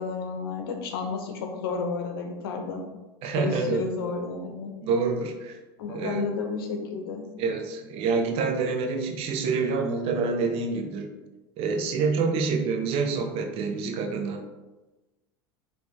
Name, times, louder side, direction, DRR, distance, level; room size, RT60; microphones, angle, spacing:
voice 1, 0.0-2.9 3.4-4.7 5.8-7.3, left 4 dB, 90° left, 3 dB, 0.8 m, -31 dB
voice 2, 3.2-3.9 4.8-5.6 5.9-6.3 7.4-11.1 11.6-14.4, right 4 dB, 55° right, 5 dB, 0.7 m, -27 dB
4.1 x 3.0 x 3.5 m, 1.1 s
supercardioid pair, 115°, 12 cm